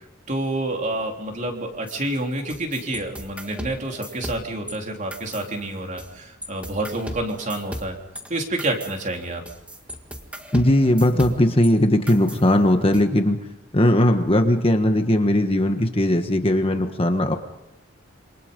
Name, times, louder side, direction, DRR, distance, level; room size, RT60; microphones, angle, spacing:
voice 1, 0.3-8.0 8.3-9.4, right 1 dB, 35° right, 2 dB, 3.5 m, -28 dB
sound 1, 1.9-4.8 5.1-6.1 6.4-11.7 12.1-13.0, equal, 5° right, 1.8 m, -38 dB
voice 2, 10.5-13.4 13.7-17.4, left 1 dB, 25° left, 6 dB, 1.4 m, -19 dB
27.5 x 26.0 x 5.4 m, 0.83 s
head